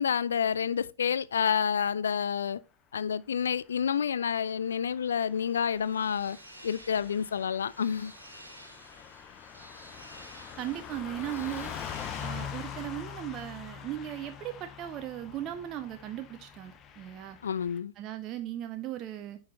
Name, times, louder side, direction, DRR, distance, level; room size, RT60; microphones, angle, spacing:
voice 1, 0.0-2.6 2.9-6.4 6.6-8.1 17.4-17.9, left 7 dB, 70° left, 0.3 m, -29 dB
Car passing by / Truck, 4.8-17.8, left 8 dB, 30° left, 0.7 m, -44 dB
sound 1, 4.8-13.9, right 1 dB, 85° right, 1.4 m, -53 dB
voice 2, 10.6-11.7 12.2-17.4 18.0-19.4, right 12 dB, 35° right, 0.5 m, -37 dB
11.0 x 3.9 x 2.8 m
figure-of-eight pair, 90°, 0 cm